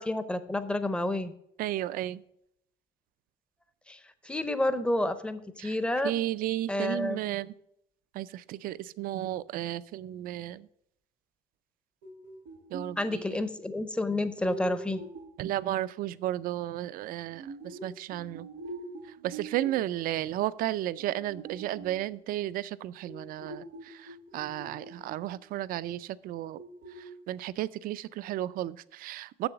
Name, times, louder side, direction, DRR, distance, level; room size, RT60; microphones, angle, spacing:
voice 1, 0.0-1.3 3.9-4.0 4.2-6.1 6.7-7.2 13.0-15.0, left 1 dB, 5° left, 12 dB, 0.6 m, -30 dB
voice 2, 1.6-2.2 5.6-5.7 6.0-7.5 8.1-10.7 12.7-13.3 15.4-18.5 19.2-26.6 27.3-29.5, right 14 dB, 55° right, 18 dB, 0.4 m, -33 dB
sound 1, 12.0-13.2 14.4-15.4 17.3-19.9 21.0-22.1 23.0-25.4 25.7-25.8 26.5-27.1, right 2 dB, 80° right, 1.2 m, -44 dB
7.0 x 6.9 x 6.7 m, 0.76 s
cardioid pair, 150°, 17 cm